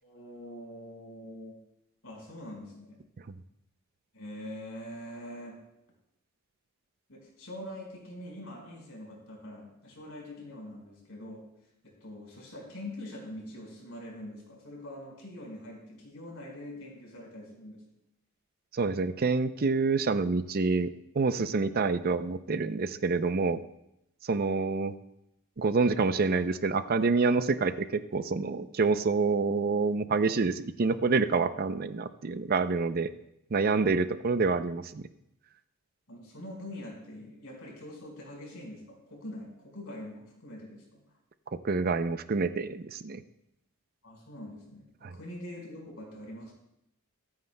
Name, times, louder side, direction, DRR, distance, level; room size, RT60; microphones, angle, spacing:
voice 1, 0.0-1.6 2.0-3.0 4.1-5.6 7.1-11.5 11.8-17.9 31.3-31.5 36.1-41.0 44.0-46.5, left 1 dB, 70° left, -1 dB, 4.8 m, -44 dB
voice 2, 18.7-20.9 21.1-23.6 24.2-24.9 25.6-33.1 33.5-35.1 41.6-43.2 45.0-45.2, right 4 dB, 45° right, 11 dB, 0.5 m, -27 dB
23.5 x 9.5 x 2.2 m, 0.82 s
head